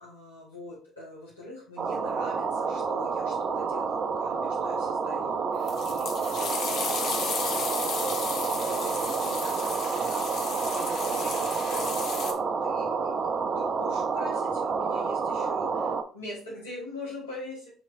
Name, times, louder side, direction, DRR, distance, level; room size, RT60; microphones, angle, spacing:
voice 1, 0.0-13.2 13.5-17.7, left 1 dB, 85° left, -6 dB, 1.5 m, -43 dB
sound 1, 1.8-16.0, right 5 dB, 45° right, 0.6 m, -29 dB
sound 2, 5.7-12.3, left 6 dB, 55° left, 0.7 m, -34 dB
6.7 x 3.0 x 2.6 m, 0.39 s
figure-of-eight pair, 55°, 0 cm